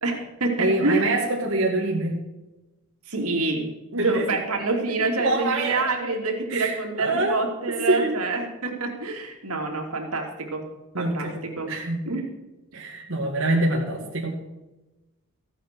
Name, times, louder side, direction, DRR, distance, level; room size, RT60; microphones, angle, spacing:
voice 1, 0.0-1.1 3.1-3.7 4.0-10.6 11.0-11.7 12.1-12.3, right 3 dB, 85° right, 2 dB, 3.0 m, -27 dB
voice 2, 0.6-2.2 3.9-4.3 5.2-5.8 6.5-7.4 7.9-8.1 10.9-11.4 11.7-12.0 12.7-14.4, right 2 dB, 60° right, -2 dB, 2.1 m, -25 dB
15.0 x 9.1 x 6.3 m, 1.1 s
head